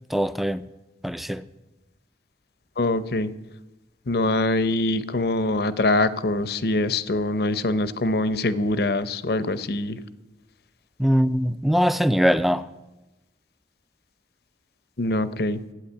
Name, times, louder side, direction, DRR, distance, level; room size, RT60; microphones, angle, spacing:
voice 1, 0.1-0.6 1.0-1.4 11.0-12.7, equal, ahead, 0.4 m, -21 dB
voice 2, 2.8-3.3 4.1-10.0 15.0-15.6, left 2 dB, 60° left, 0.7 m, -24 dB
13.0 x 9.0 x 8.5 m
head